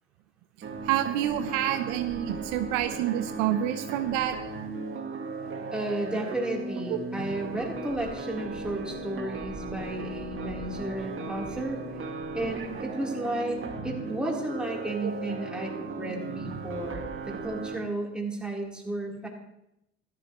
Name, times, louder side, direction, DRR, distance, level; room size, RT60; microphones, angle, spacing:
sound 1, 0.6-17.8, right 3 dB, 40° right, 2.1 m, -37 dB
voice 1, 0.8-4.4 6.9-7.0 15.0-15.1, right 12 dB, 70° right, 9 dB, 0.8 m, -28 dB
voice 2, 5.7-11.8 12.3-13.6 13.8-19.3, right 1 dB, 5° right, -2 dB, 3.7 m, -33 dB
14.0 x 13.0 x 3.1 m, 0.83 s
hypercardioid pair, 70°, 33 cm